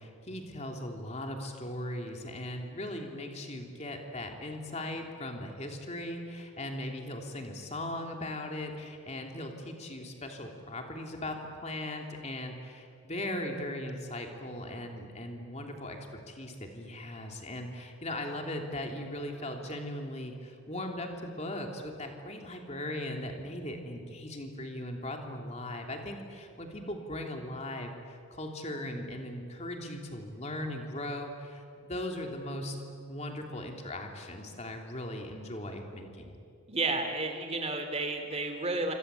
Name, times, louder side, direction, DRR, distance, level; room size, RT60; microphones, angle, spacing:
voice 1, 0.0-11.4 11.6-16.0 16.3-36.4, left 1 dB, 30° left, 3 dB, 3.1 m, -38 dB
voice 2, 36.7-38.9, right 3 dB, 30° right, 6 dB, 3.1 m, -31 dB
27.0 x 25.5 x 8.4 m, 2.4 s
head